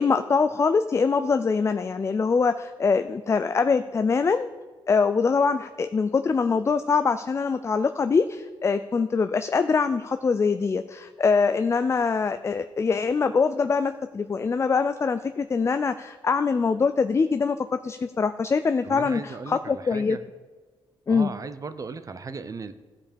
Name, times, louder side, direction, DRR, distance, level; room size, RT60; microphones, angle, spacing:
voice 1, 0.0-4.5 4.9-20.2 21.1-21.3, left 5 dB, 30° left, 10 dB, 0.4 m, -23 dB
voice 2, 18.8-20.2 21.1-22.7, right 4 dB, 35° right, 11 dB, 0.7 m, -36 dB
14.5 x 5.0 x 5.2 m, 1.4 s
cardioid pair, 95°, 10 cm